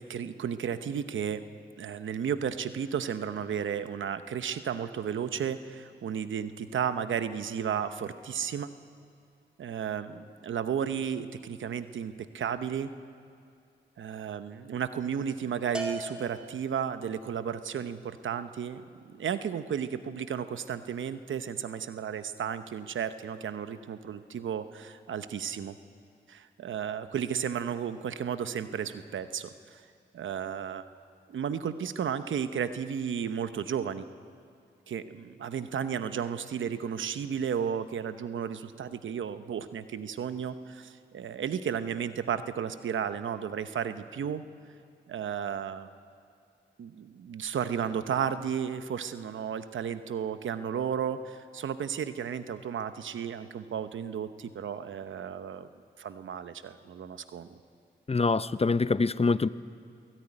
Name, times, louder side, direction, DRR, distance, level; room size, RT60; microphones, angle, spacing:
voice 1, 0.0-1.4 1.8-8.7 9.6-12.9 14.0-18.8 19.1-25.8 26.3-29.8 30.1-30.8 31.3-34.1 34.9-44.4 45.1-45.9 46.8-55.7 56.0-57.6, right 8 dB, 90° right, 11 dB, 0.9 m, -33 dB
Bell, 15.7-17.1, right 1 dB, 5° right, 3.8 m, -38 dB
voice 2, 58.1-59.5, left 4 dB, 30° left, 16 dB, 0.7 m, -25 dB
21.5 x 18.0 x 9.8 m, 2.4 s
cardioid pair, 45°, 19 cm